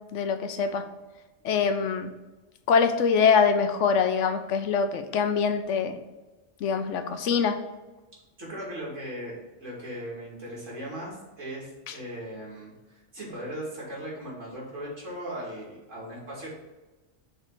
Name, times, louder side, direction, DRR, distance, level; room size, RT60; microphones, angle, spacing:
voice 1, 0.1-0.8 1.4-2.1 2.7-6.0 6.6-7.6 11.9-12.0, left 6 dB, 75° left, 8 dB, 1.0 m, -24 dB
voice 2, 8.4-16.5, right 1 dB, 90° right, -5 dB, 2.7 m, -38 dB
6.6 x 3.7 x 4.7 m, 1.2 s
omnidirectional pair, 1.3 m